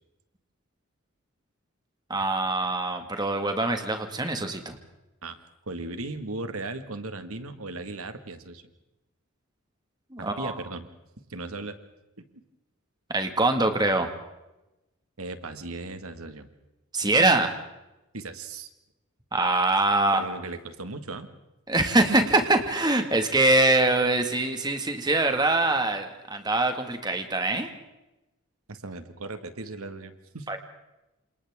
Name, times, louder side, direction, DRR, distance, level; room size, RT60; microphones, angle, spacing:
voice 1, 2.1-4.8 10.1-10.5 13.1-14.1 16.9-17.5 19.3-20.2 21.7-27.7 30.5-30.6, right 2 dB, 20° right, 6 dB, 1.9 m, -23 dB
voice 2, 5.7-8.6 10.2-10.9 11.3-11.8 12.2-12.4 15.2-16.5 18.1-18.7 20.1-21.3 22.1-22.2 28.7-30.5, right 2 dB, 90° right, 9 dB, 1.9 m, -37 dB
28.5 x 27.5 x 3.7 m, 0.97 s
head